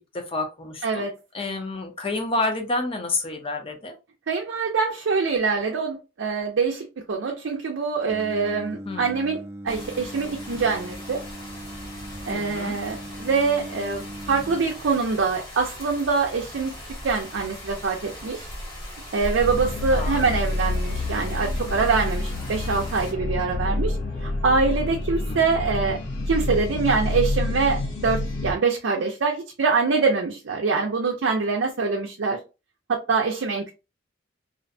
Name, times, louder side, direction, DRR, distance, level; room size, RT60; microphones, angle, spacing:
voice 1, 0.1-3.9 8.9-9.1 12.3-12.7 19.9-20.4 25.2-25.5, left 2 dB, 30° left, 0.6 m, -29 dB
voice 2, 4.3-9.4 9.6-11.2 12.3-14.0 14.3-18.5 19.1-26.0 26.3-32.4 32.9-33.6, right 4 dB, 70° right, 0.5 m, -24 dB
Singing, 8.1-14.6, equal, 15° right, 0.4 m, -39 dB
sound 1, 9.7-23.1, left 1 dB, 50° left, 1.5 m, -39 dB
sound 2, 19.4-28.5, left 2 dB, 75° left, 0.7 m, -28 dB
2.5 x 2.1 x 2.6 m
head